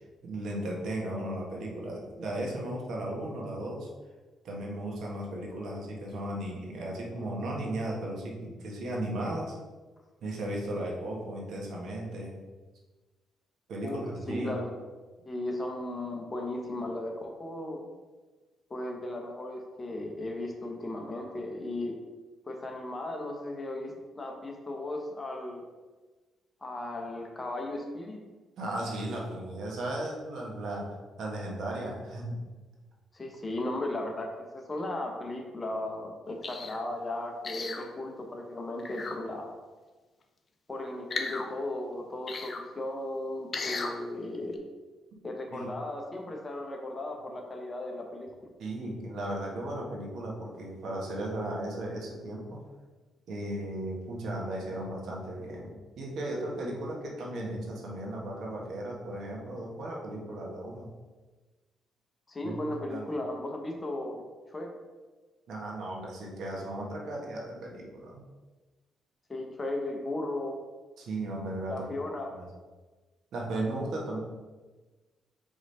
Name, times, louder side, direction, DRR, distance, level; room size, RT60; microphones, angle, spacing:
voice 1, 0.2-3.9 4.4-9.5 10.2-12.3 13.7-14.5 28.6-32.4 45.5-45.7 48.6-52.6 53.3-60.9 62.4-62.5 62.9-63.1 65.5-68.2 71.0-71.8 72.3-72.4 73.3-74.2, right 1 dB, 70° right, -2 dB, 1.5 m, -36 dB
voice 2, 14.3-14.8 15.2-17.8 18.7-22.0 22.5-25.6 26.6-28.2 33.1-39.5 40.7-44.6 45.2-48.3 62.3-64.2 64.5-64.7 69.3-70.6 71.7-72.3, left 1 dB, 25° left, 1 dB, 1.1 m, -36 dB
sound 1, 36.4-36.8 37.4-37.9 38.8-39.2 41.1-41.5 42.3-42.6 43.5-43.9 44.5-44.6, left 3 dB, 40° left, 0.7 m, -35 dB
5.0 x 3.7 x 5.6 m, 1.3 s
cardioid pair, 90°, 0 cm